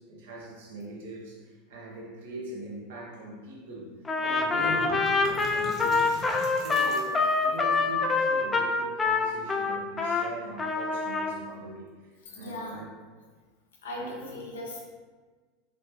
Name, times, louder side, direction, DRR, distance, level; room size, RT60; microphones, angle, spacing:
voice 1, 0.0-3.9 4.2-6.2 6.6-12.9 14.0-14.4, right 2 dB, 65° right, -3 dB, 1.0 m, -41 dB
Trumpet, 4.0-10.3 10.6-11.3, left 4 dB, 20° left, 0.4 m, -26 dB
sound 1, 4.2-4.3 4.5-7.6, right 1 dB, 20° right, 0.9 m, -43 dB
voice 2, 12.2-12.8 13.8-14.8, left 1 dB, 70° left, -2 dB, 0.8 m, -38 dB
3.8 x 3.3 x 3.1 m, 1.4 s
figure-of-eight pair, 80°, 0 cm